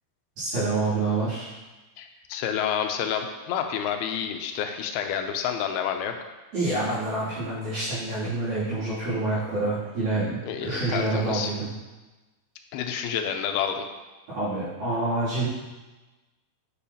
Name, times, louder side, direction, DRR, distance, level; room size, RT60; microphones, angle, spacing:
voice 1, 0.4-1.5 6.5-10.4 10.7-11.7 14.3-15.5, right 2 dB, 60° right, -14 dB, 4.3 m, -27 dB
voice 2, 2.0-6.1 10.4-11.5 12.7-13.9, left 8 dB, 80° left, 5 dB, 2.4 m, -29 dB
8.4 x 6.1 x 2.8 m, 1.1 s
omnidirectional pair, 4.6 m